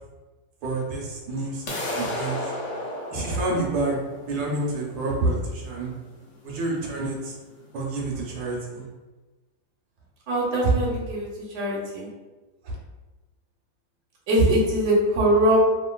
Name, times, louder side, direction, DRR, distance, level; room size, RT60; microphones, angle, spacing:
voice 1, 0.6-2.5 3.1-5.9 6.4-7.3 7.7-8.8 12.6-12.8, right 2 dB, 75° right, -2 dB, 1.3 m, -28 dB
sound 1, 1.7-7.6, left 1 dB, 75° left, 0.6 m, -34 dB
voice 2, 10.3-12.1 14.3-15.6, right 1 dB, 50° right, -5 dB, 0.8 m, -22 dB
3.1 x 2.5 x 2.3 m, 1.2 s
omnidirectional pair, 2.0 m